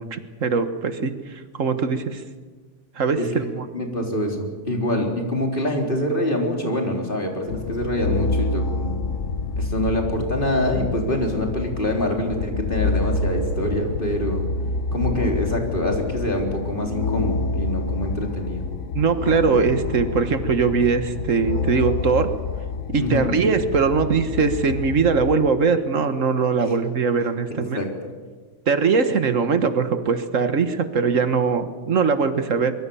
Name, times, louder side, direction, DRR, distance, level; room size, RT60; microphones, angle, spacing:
voice 1, 0.0-2.2 3.0-3.6 18.9-22.3 22.9-27.8 28.7-32.7, right 5 dB, 85° right, 9 dB, 1.8 m, -21 dB
voice 2, 3.2-9.0 9.6-14.5 14.9-18.6 23.0-23.3 26.6-26.8 27.5-27.9, left 1 dB, 45° left, 1 dB, 4.0 m, -25 dB
sound 1, 7.5-25.4, left 3 dB, 85° left, 1.3 m, -27 dB
24.0 x 22.5 x 7.0 m, 1.4 s
omnidirectional pair, 1.3 m